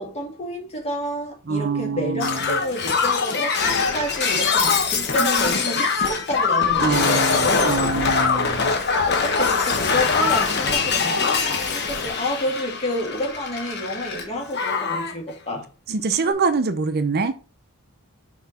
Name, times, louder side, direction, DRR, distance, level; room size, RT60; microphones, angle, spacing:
voice 1, 0.0-7.8 8.6-15.7, left 1 dB, 30° left, 2.1 m, -29 dB
voice 2, 1.5-2.4 6.8-8.8 15.9-17.3, right 4 dB, 45° right, 0.6 m, -24 dB
Shatter, 2.2-14.2 14.5-15.1 16.2-16.3, left 5 dB, 50° left, 1.2 m, -22 dB
6.1 x 4.6 x 4.1 m
head